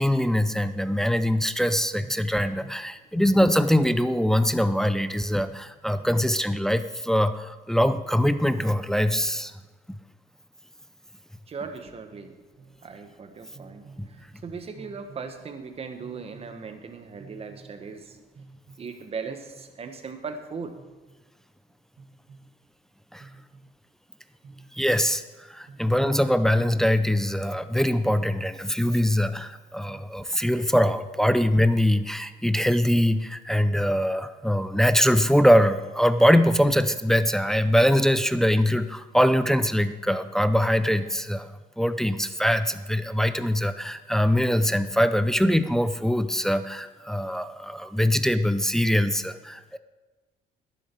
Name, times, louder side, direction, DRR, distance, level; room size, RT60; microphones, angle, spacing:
voice 1, 0.0-9.5 14.0-14.1 23.1-23.3 24.7-25.2 25.5-41.5 41.8-49.8, equal, 5° left, 11 dB, 0.5 m, -23 dB
voice 2, 11.5-20.8 22.0-22.5 23.2-23.4 24.4-24.7 25.7-25.9 29.9-30.0, right 5 dB, 35° right, 7 dB, 1.4 m, -39 dB
11.5 x 10.5 x 4.6 m, 1.2 s
cardioid pair, 110°, 17 cm